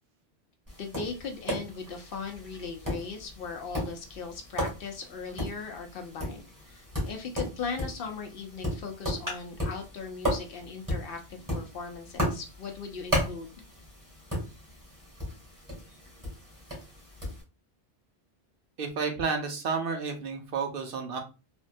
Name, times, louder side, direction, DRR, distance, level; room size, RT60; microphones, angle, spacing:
Tap, 0.7-17.4, equal, 20° right, 1.5 m, -35 dB
voice 1, 0.8-13.5, left 5 dB, 65° left, 5 dB, 0.7 m, -38 dB
voice 2, 18.8-21.2, right 5 dB, 65° right, 4 dB, 0.8 m, -31 dB
3.4 x 2.2 x 2.5 m, 0.30 s
omnidirectional pair, 1.1 m